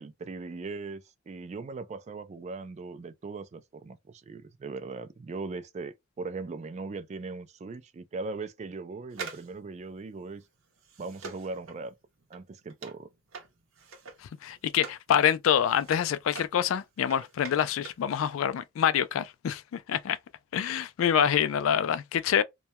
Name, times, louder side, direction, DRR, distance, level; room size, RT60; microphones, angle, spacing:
voice 1, 0.0-10.4 11.0-11.9 12.3-13.1, right 3 dB, 35° right, 0.3 m, -39 dB
sound 1, 9.1-15.1 15.4-18.1 18.3-18.4, right 5 dB, 90° right, 0.7 m, -45 dB
voice 2, 14.4-20.2 20.5-22.4, left 9 dB, 75° left, 0.3 m, -26 dB
2.2 x 2.2 x 2.7 m
head